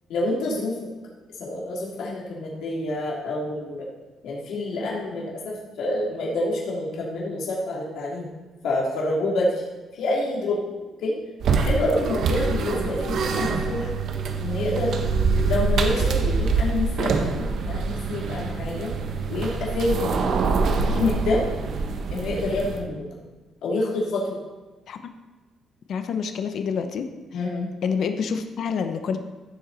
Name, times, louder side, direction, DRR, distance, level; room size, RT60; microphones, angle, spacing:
voice 1, 0.1-0.8 1.4-3.9 4.2-8.3 8.6-9.6 9.9-10.6 11.0-11.2 11.6-13.9 14.4-14.9 15.4-18.9 19.3-20.2 20.9-21.4 22.1-23.0 23.6-24.4 27.3-27.7, left 2 dB, 75° left, -4 dB, 2.7 m, -27 dB
sound 1, 11.4-22.8, right 4 dB, 55° right, 1.1 m, -25 dB
voice 2, 25.9-27.1 27.8-29.2, left 6 dB, 55° left, 8 dB, 0.8 m, -27 dB
15.0 x 7.2 x 4.1 m, 1.2 s
cardioid pair, 150°, 0 cm